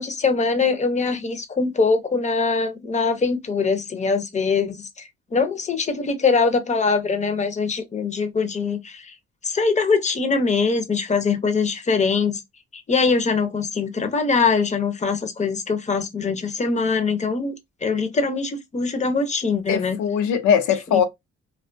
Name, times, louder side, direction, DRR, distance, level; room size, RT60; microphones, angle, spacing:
voice 1, 0.0-9.1 9.4-12.4 12.7-17.5 17.8-20.0 20.9-21.0, left 4 dB, 25° left, 0.5 m, -22 dB
voice 2, 19.7-21.0, left 8 dB, 80° left, 0.6 m, -20 dB
2.4 x 2.2 x 2.4 m
cardioid pair, 90°, 30 cm